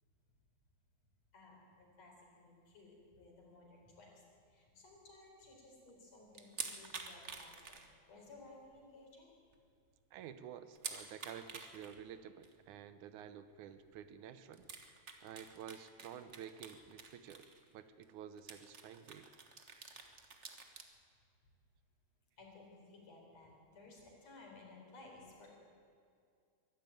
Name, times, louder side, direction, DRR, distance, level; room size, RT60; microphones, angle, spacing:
voice 1, 1.3-4.2 4.5-9.3 19.8-20.0 22.4-25.5, left 2 dB, 60° left, -1 dB, 5.4 m, -58 dB
sound 1, 6.3-8.3 8.6-8.7 9.2-9.3 9.5-9.6 10.8-12.0 12.4-12.6 13.9-14.0 14.5-17.7 18.0-18.1 18.4-20.8, right 4 dB, 60° right, 0.7 m, -48 dB
voice 2, 10.1-17.5 17.7-19.3, right 9 dB, 80° right, 12 dB, 2.3 m, -51 dB
23.0 x 13.0 x 9.2 m, 2.3 s
omnidirectional pair, 3.4 m